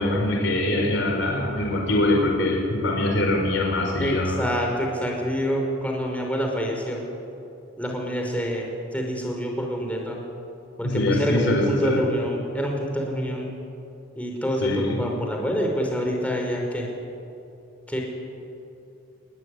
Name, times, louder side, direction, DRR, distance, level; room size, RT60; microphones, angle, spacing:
voice 1, 0.0-4.4 10.8-12.0 14.6-15.1, left 1 dB, 60° left, 0 dB, 4.9 m, -23 dB
voice 2, 4.0-7.0 7.8-10.2 10.8-13.5 14.2-16.9 17.9-18.0, equal, 5° left, 0 dB, 5.1 m, -27 dB
28.5 x 20.0 x 9.9 m, 2.7 s
head